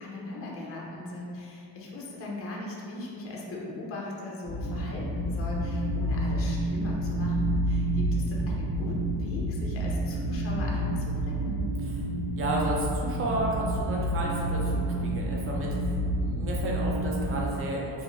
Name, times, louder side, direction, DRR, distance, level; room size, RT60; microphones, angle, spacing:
voice 1, 0.0-11.6, left 2 dB, 30° left, -3 dB, 0.4 m, -38 dB
sound 1, 4.4-17.4, right 1 dB, 90° right, 0.8 m, -29 dB
voice 2, 12.4-18.0, right 1 dB, 30° right, -3 dB, 0.4 m, -32 dB
2.6 x 2.4 x 3.0 m, 2.4 s
cardioid pair, 150°, 46 cm